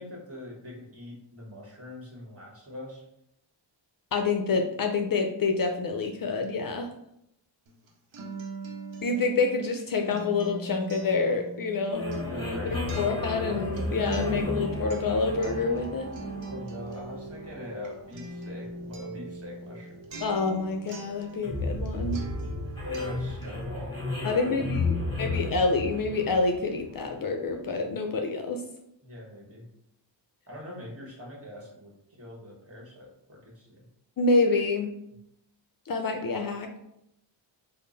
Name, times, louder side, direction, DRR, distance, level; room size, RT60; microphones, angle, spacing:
voice 1, 0.0-3.1 12.1-13.0 16.5-20.1 22.8-24.6 25.0-25.4 29.0-29.7 30.5-33.8, left 2 dB, 30° right, -3 dB, 1.3 m, -42 dB
voice 2, 4.1-6.9 9.0-12.1 13.0-16.1 20.2-22.2 24.2-28.6 34.2-34.9 35.9-36.7, left 3 dB, 50° left, 4 dB, 0.5 m, -27 dB
Acoustic guitar, 7.7-21.9 22.1-23.6, right 3 dB, 90° right, 0.7 m, -42 dB
sound 1, 11.9-27.3, left 2 dB, 10° left, 1.1 m, -34 dB
3.7 x 2.0 x 3.8 m, 0.79 s
cardioid pair, 70°, 45 cm